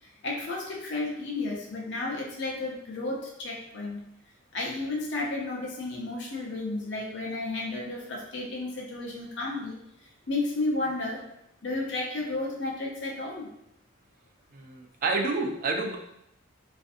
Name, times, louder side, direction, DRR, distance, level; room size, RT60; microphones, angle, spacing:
voice 1, 0.0-4.0 4.5-9.8 10.3-11.2 11.6-13.5, left 2 dB, 60° left, -2 dB, 0.7 m, -32 dB
voice 2, 14.5-16.0, right 3 dB, 45° right, 2 dB, 0.3 m, -29 dB
2.6 x 2.5 x 2.4 m, 0.79 s
head